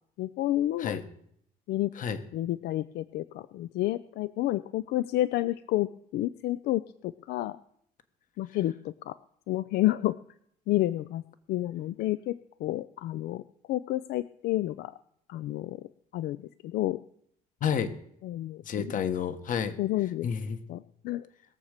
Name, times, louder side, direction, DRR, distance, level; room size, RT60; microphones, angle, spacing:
voice 1, 0.2-1.0 1.7-1.9 2.3-7.6 8.4-9.2 9.5-10.2 10.7-11.2 11.5-13.4 13.7-14.9 15.3-16.4 16.6-17.0 18.2-18.9 19.8-20.3 20.7-21.3, left 15 dB, 75° left, 16 dB, 0.5 m, -30 dB
voice 2, 17.6-17.9 18.6-19.8 20.2-20.6, left 7 dB, 50° left, 11 dB, 1.3 m, -30 dB
20.5 x 7.3 x 6.6 m, 0.71 s
cardioid pair, 110°, 17 cm